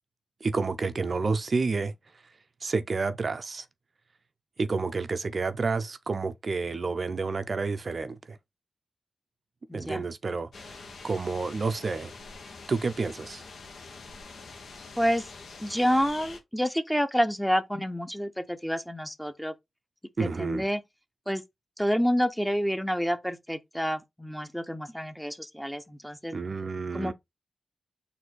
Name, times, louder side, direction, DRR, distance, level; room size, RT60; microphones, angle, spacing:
voice 1, 0.4-1.9 2.6-3.7 4.6-8.4 9.7-12.1 12.7-13.4 20.2-20.7 26.3-27.1, right 4 dB, 50° right, 0.4 m, -30 dB
voice 2, 9.7-10.0 15.0-15.2 15.6-19.5 20.2-20.8 21.3-21.4 21.8-26.3 26.9-27.1, equal, 5° left, 0.6 m, -28 dB
sound 1, 10.5-16.4, left 4 dB, 85° left, 1.0 m, -45 dB
4.1 x 2.6 x 4.6 m
wide cardioid pair, 85°, 0 cm